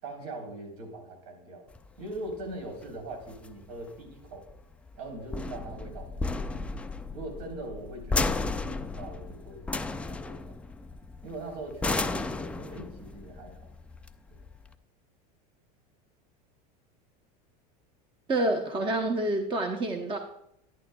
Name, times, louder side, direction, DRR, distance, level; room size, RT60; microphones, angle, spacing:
voice 1, 0.0-1.7 2.0-4.5 4.9-10.5 11.2-13.7 14.3-14.4, right 2 dB, 70° right, 2 dB, 3.7 m, -42 dB
sound 1, 1.7-14.7, left 3 dB, 5° left, 0.3 m, -34 dB
voice 2, 18.3-20.2, right 2 dB, 25° right, 5 dB, 0.8 m, -28 dB
11.5 x 10.5 x 2.3 m, 0.78 s
supercardioid pair, 120°, 21 cm